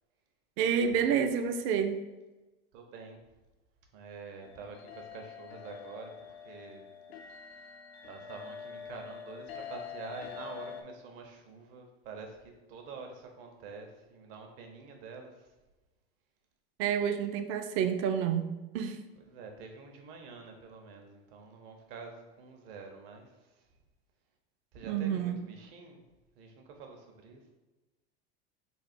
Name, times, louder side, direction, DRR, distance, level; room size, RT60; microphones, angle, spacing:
voice 1, 0.6-2.0 16.8-18.5 18.7-19.0 24.9-25.4, right 7 dB, 45° right, 8 dB, 0.4 m, -29 dB
voice 2, 2.7-3.2 3.9-6.8 7.3-7.7 8.0-15.5 19.2-23.7 24.7-26.0 26.4-27.4, right 4 dB, 65° right, 3 dB, 0.8 m, -47 dB
sound 1, 4.4-10.8, left 7 dB, 90° left, 0.5 m, -45 dB
3.4 x 2.4 x 4.2 m, 1.1 s
hypercardioid pair, 95°, 30 cm